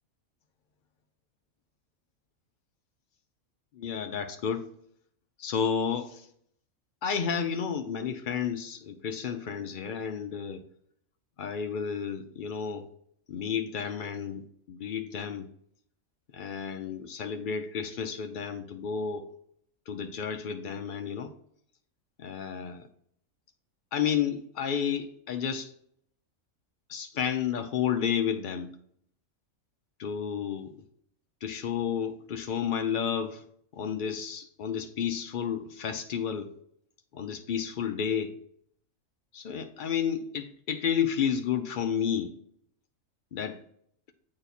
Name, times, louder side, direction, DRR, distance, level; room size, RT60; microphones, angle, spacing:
voice 1, 3.7-4.6 5.4-6.3 7.0-10.6 11.4-12.9 13.3-15.5 16.3-19.3 19.9-21.3 22.2-22.9 23.9-25.7 26.9-28.7 30.0-30.8 31.4-33.4 33.7-36.5 37.1-38.4 39.3-42.3 43.3-43.6, left 7 dB, 80° left, 0.4 m, -31 dB
8.1 x 3.2 x 4.1 m
omnidirectional pair, 1.5 m